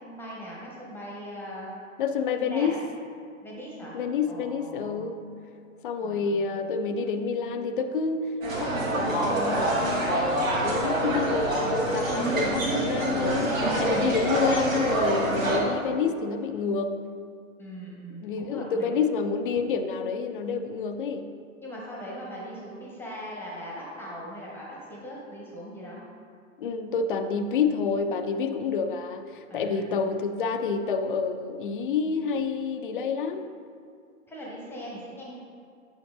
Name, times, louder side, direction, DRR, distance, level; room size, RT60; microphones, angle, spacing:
voice 1, 0.0-1.8 2.4-2.8 3.4-4.0 4.3-5.1 6.0-6.3 6.7-6.8 17.6-19.1 21.6-26.0 29.5-30.1 34.3-35.4, equal, 5° left, -4 dB, 0.9 m, -40 dB
voice 2, 2.0-2.8 3.9-5.2 5.8-17.0 18.2-21.3 26.6-33.5, left 5 dB, 40° left, 8 dB, 0.4 m, -28 dB
sound 1, 8.4-15.6, right 1 dB, 75° right, 1.4 m, -26 dB
8.8 x 5.7 x 2.4 m, 2.2 s
figure-of-eight pair, 110°, 40 cm